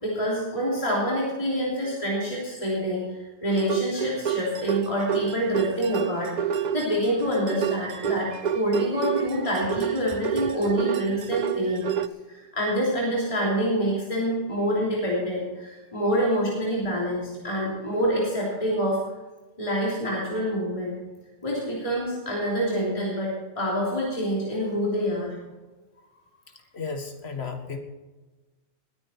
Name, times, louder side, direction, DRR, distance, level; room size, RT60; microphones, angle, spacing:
voice 1, 0.0-6.3 6.7-11.8 12.3-19.0 19.6-20.9 21.4-25.3, equal, 30° left, -5 dB, 3.4 m, -26 dB
sound 1, 3.5-12.1, right 8 dB, 50° right, 0.6 m, -29 dB
voice 2, 26.7-27.8, left 5 dB, 70° left, 5 dB, 1.9 m, -33 dB
20.5 x 9.4 x 4.5 m, 1.2 s
omnidirectional pair, 1.1 m